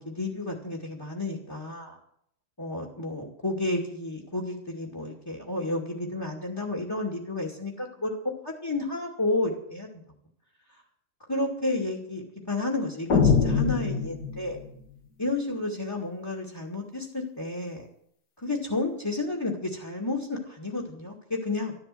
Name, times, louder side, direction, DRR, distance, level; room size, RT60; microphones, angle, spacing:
voice 1, 0.0-2.0 2.6-8.2 8.4-9.9 11.3-14.6 15.2-17.9 18.4-21.7, left 2 dB, 10° left, 0 dB, 2.2 m, -31 dB
sound 1, 13.1-14.7, left 5 dB, 50° left, 2.2 m, -23 dB
13.0 x 12.5 x 7.8 m, 0.69 s
omnidirectional pair, 2.4 m